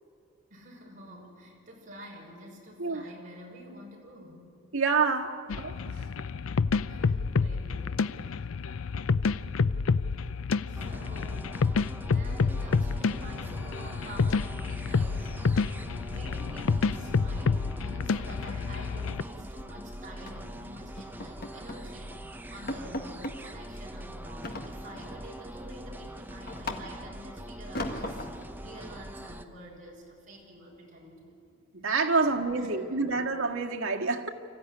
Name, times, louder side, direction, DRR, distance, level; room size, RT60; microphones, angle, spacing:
voice 1, 0.5-4.5 6.9-8.5 10.7-28.2 28.6-31.6 32.2-33.2, equal, 40° right, 5.9 m, -48 dB
voice 2, 4.7-5.8 31.7-34.3, right 4 dB, 80° right, 1.8 m, -27 dB
sound 1, 5.5-19.2, left 4 dB, 80° left, 0.5 m, -29 dB
sound 2, 10.8-29.5, right 1 dB, 10° right, 0.8 m, -43 dB
sound 3, 15.5-16.3 16.6-16.9 17.2-17.4 17.7-17.8 18.2-19.7 20.3-20.5 21.0-21.9 22.3-22.4 22.7-23.4 24.4-25.2 25.6-27.2 27.7-28.5, left 1 dB, 45° left, 1.7 m, -39 dB
26.5 x 15.0 x 9.9 m
head